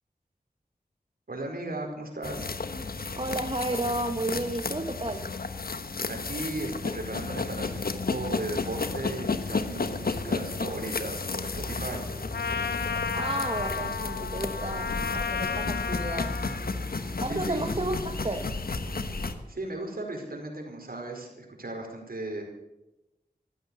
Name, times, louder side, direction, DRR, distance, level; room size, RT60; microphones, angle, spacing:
voice 1, 1.3-2.5 6.1-12.0 17.3-17.7 19.5-22.4, right 2 dB, 65° right, 2 dB, 4.8 m, -36 dB
sound 1, 2.2-19.3, left 4 dB, 65° left, 1.2 m, -33 dB
voice 2, 3.2-5.3 13.1-16.5 17.2-18.4, right 2 dB, 35° right, 4 dB, 1.4 m, -32 dB
sound 2, 11.5-19.5, equal, 10° right, 6.0 m, -40 dB
Trumpet, 12.3-16.7, left 5 dB, 85° left, 0.8 m, -32 dB
16.0 x 12.5 x 7.1 m, 0.95 s
cardioid pair, 45°, 17 cm